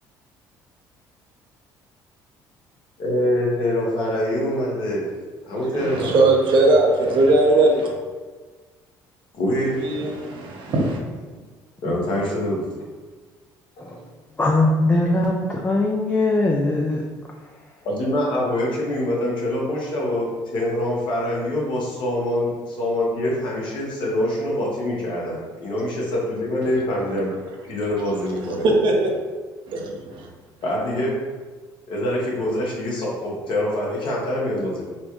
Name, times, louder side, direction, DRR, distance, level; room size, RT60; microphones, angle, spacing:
voice 1, 3.0-5.1 5.4-6.1 9.3-10.5 11.8-12.7 13.8-14.0 17.8-27.3 27.6-28.7 30.6-31.2 31.9-34.8, left 1 dB, 60° left, -3 dB, 1.1 m, -25 dB
voice 2, 5.7-7.9 9.8-11.0 28.6-29.1 29.7-30.3, right 2 dB, 60° right, 0 dB, 0.7 m, -19 dB
voice 3, 14.4-17.1, left 2 dB, 20° left, -1 dB, 0.4 m, -20 dB
4.1 x 2.3 x 2.9 m, 1.4 s
supercardioid pair, 70°, 9 cm